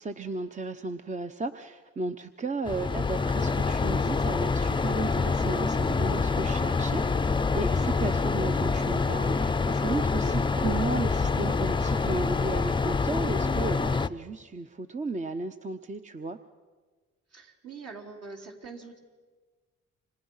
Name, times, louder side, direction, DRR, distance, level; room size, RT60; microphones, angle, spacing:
voice 1, 0.0-7.0 7.5-16.4, right 3 dB, 25° right, 8 dB, 0.9 m, -34 dB
sound 1, 2.7-14.1, left 4 dB, 15° left, 0.6 m, -26 dB
voice 2, 17.3-19.0, right 4 dB, 55° right, 1 dB, 4.2 m, -44 dB
29.5 x 26.0 x 5.7 m, 1.4 s
cardioid pair, 90°, 30 cm